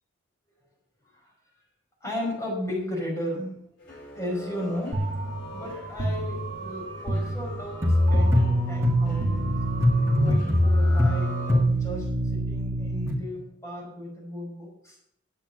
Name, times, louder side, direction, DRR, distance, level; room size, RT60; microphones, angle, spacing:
voice 1, 2.0-3.6 4.1-5.0 5.4-9.6 10.1-15.0, left 1 dB, 15° left, -5 dB, 5.3 m, -35 dB
sound 1, 3.8-12.0, equal, 60° left, 5.6 m, -42 dB
sound 2, 4.9-11.3, right 2 dB, 45° right, 1.9 m, -32 dB
sound 3, 7.8-13.1, equal, 15° right, 1.8 m, -23 dB
8.7 x 8.6 x 7.8 m, 0.73 s
head